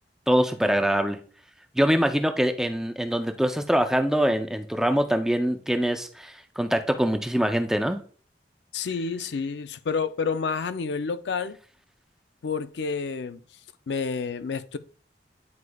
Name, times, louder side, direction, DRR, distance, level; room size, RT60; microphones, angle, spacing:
voice 1, 0.3-1.2 1.8-8.0, equal, 5° right, 0.4 m, -24 dB
voice 2, 8.7-11.6 12.4-13.4 13.9-14.8, left 5 dB, 80° left, 0.4 m, -29 dB
9.5 x 4.7 x 2.3 m
head